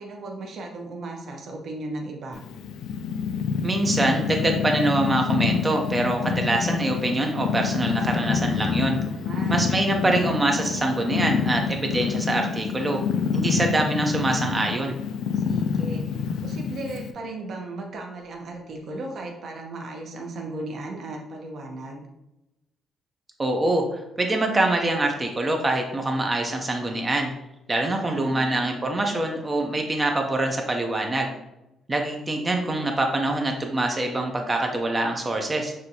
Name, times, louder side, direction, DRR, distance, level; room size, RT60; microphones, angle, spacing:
voice 1, 0.0-2.4 9.1-9.6 15.3-22.0 28.0-28.7, right 2 dB, 50° right, 1 dB, 0.8 m, -36 dB
Purr, 2.3-17.1, left 6 dB, 85° left, 0.3 m, -27 dB
voice 2, 3.6-9.0 9.5-13.0 13.3-14.9 23.4-27.3 27.7-31.3 31.9-35.7, right 2 dB, 20° right, 3 dB, 0.5 m, -24 dB
6.1 x 2.5 x 2.7 m, 0.92 s
cardioid pair, 145°, 0 cm